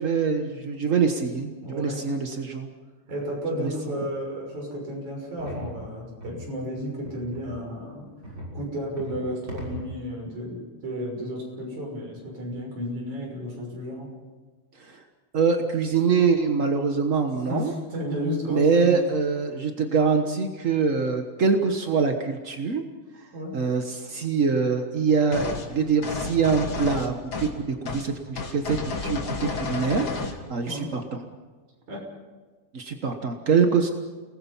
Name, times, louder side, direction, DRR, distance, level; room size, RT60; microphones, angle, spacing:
voice 1, 0.0-2.7 3.6-4.0 14.8-15.0 15.3-17.7 18.5-22.8 23.5-31.2 32.7-33.9, right 5 dB, 55° right, 5 dB, 0.8 m, -24 dB
voice 2, 1.6-2.0 3.1-8.0 8.5-14.1 17.5-18.9 23.3-23.5 30.6-30.9 31.9-32.0, equal, 75° right, -1 dB, 7.7 m, -32 dB
sound 1, 5.4-5.7 6.2-6.4 7.0-7.5 8.2-8.5 9.0-9.2 9.5-9.9, equal, 35° right, 7.1 m, -37 dB
sound 2, 25.3-25.7 26.0-27.6 27.9-28.1 28.4-30.4, left 4 dB, 35° left, 2.2 m, -31 dB
29.5 x 20.0 x 5.7 m, 1.4 s
omnidirectional pair, 3.4 m